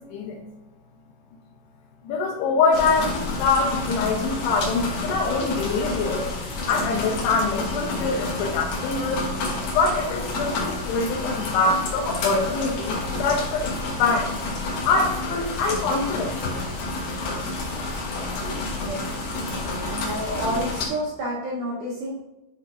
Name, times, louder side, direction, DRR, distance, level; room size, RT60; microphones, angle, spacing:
voice 1, 2.0-6.3 6.7-9.3 9.7-14.4 14.9-16.4, left 4 dB, 80° left, -2 dB, 2.5 m, -24 dB
sound 1, 2.7-20.9, left 2 dB, 60° left, 2.3 m, -29 dB
voice 2, 18.4-19.0 19.8-22.2, equal, 80° right, -4 dB, 2.1 m, -30 dB
10.0 x 4.7 x 2.4 m, 1.0 s
omnidirectional pair, 5.4 m